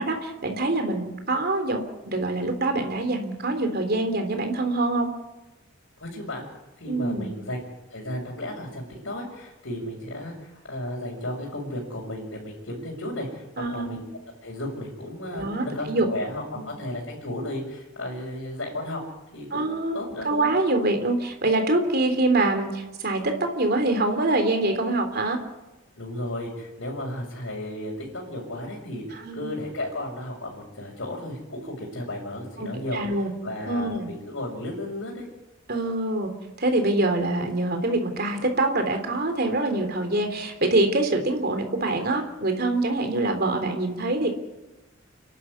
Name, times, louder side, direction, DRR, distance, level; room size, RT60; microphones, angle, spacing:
voice 1, 0.0-5.1 6.9-7.3 13.6-14.0 15.3-16.1 16.5-16.6 19.5-25.4 29.1-29.5 32.6-33.3 33.6-34.1 35.7-36.3 36.6-44.3, right 2 dB, 50° right, 6 dB, 3.5 m, -25 dB
voice 2, 6.0-6.5 6.8-7.6 7.9-14.0 14.4-19.0 19.3-20.5 26.0-33.0 33.4-35.3, left 1 dB, 70° left, -5 dB, 5.8 m, -34 dB
29.5 x 12.0 x 9.6 m, 1.0 s
head